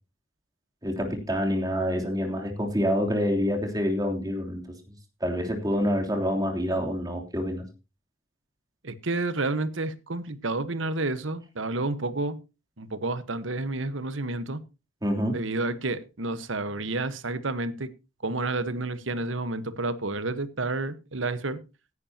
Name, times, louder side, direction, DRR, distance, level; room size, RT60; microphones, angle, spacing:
voice 1, 0.8-4.6 5.2-7.6 15.0-15.4, equal, 20° right, 3.1 m, -27 dB
voice 2, 8.8-12.4 12.8-14.6 15.3-17.9 18.2-21.6, right 2 dB, 70° right, 1.2 m, -30 dB
16.0 x 11.0 x 2.9 m
head